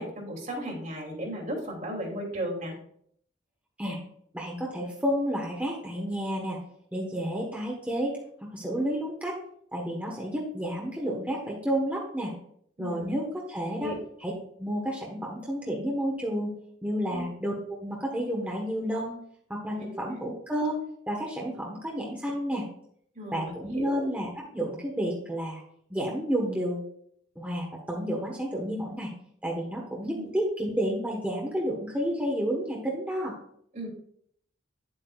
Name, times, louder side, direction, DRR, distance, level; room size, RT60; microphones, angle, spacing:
voice 1, 0.0-2.7 12.8-13.1 13.8-14.0 17.1-17.2 19.8-20.2 23.1-24.1 30.1-30.3 33.7-33.9, equal, 45° right, 0 dB, 2.8 m, -35 dB
voice 2, 4.3-6.6 6.9-9.4 9.7-12.3 12.8-13.9 14.2-14.3 14.6-16.5 16.8-19.2 19.5-20.8 21.1-22.6 23.3-25.6 25.9-26.9 27.4-29.1 29.4-33.3, equal, 10° right, -3 dB, 1.3 m, -31 dB
10.0 x 7.7 x 2.4 m, 0.67 s
head